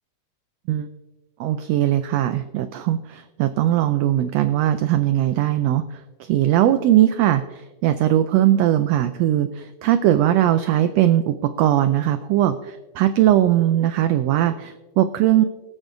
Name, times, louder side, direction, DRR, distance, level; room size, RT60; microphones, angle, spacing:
voice 1, 1.4-15.4, right 12 dB, 85° right, 10 dB, 1.4 m, -20 dB
23.0 x 8.2 x 2.6 m, 1.1 s
omnidirectional pair, 3.5 m